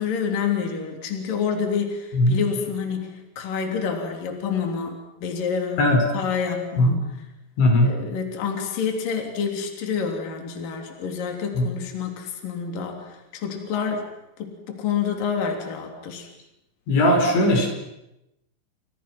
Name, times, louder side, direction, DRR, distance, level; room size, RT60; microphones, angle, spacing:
voice 1, 0.0-7.0 7.8-14.1 14.4-16.3, left 6 dB, 55° left, 3 dB, 4.6 m, -28 dB
voice 2, 7.6-7.9 11.6-11.7 16.9-17.7, left 1 dB, 90° left, 3 dB, 7.3 m, -18 dB
30.0 x 27.5 x 6.1 m, 0.88 s
omnidirectional pair, 5.1 m